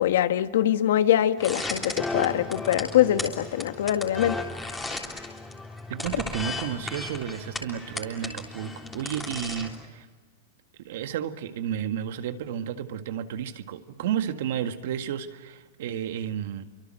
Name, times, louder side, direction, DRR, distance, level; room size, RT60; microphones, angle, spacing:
voice 1, 0.0-4.4 4.8-5.0, left 11 dB, 70° left, 10 dB, 1.4 m, -23 dB
sound 1, 1.4-9.8, left 2 dB, 5° left, 3.4 m, -35 dB
voice 2, 5.9-10.1 10.8-16.6, right 9 dB, 60° right, 8 dB, 1.9 m, -32 dB
30.0 x 25.0 x 7.8 m, 1.4 s
supercardioid pair, 160°, 0 cm